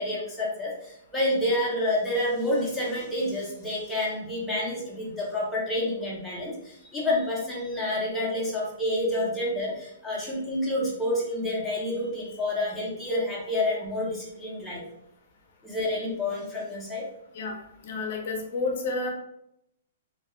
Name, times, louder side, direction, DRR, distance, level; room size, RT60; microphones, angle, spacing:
voice 1, 0.0-14.8 15.6-17.0, left 1 dB, ahead, -7 dB, 0.6 m, -29 dB
voice 2, 17.8-19.1, left 3 dB, 55° left, 1 dB, 0.5 m, -30 dB
2.2 x 2.0 x 3.0 m, 0.78 s
hypercardioid pair, 165°, 0 cm